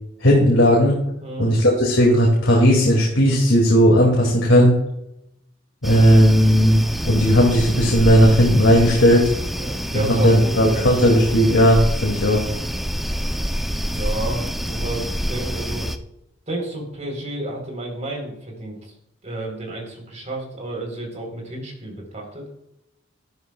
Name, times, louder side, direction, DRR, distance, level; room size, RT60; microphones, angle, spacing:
voice 1, 0.2-1.0 1.4-4.8 5.8-9.3 9.9-12.4, equal, 75° left, -2 dB, 2.3 m, -15 dB
voice 2, 1.2-1.6 9.6-10.9 13.8-15.9 16.5-18.9 19.2-22.5, right 1 dB, 40° right, 0 dB, 3.7 m, -31 dB
sound 1, 5.8-16.0, equal, ahead, 0.5 m, -27 dB
13.0 x 12.0 x 2.3 m, 0.83 s
head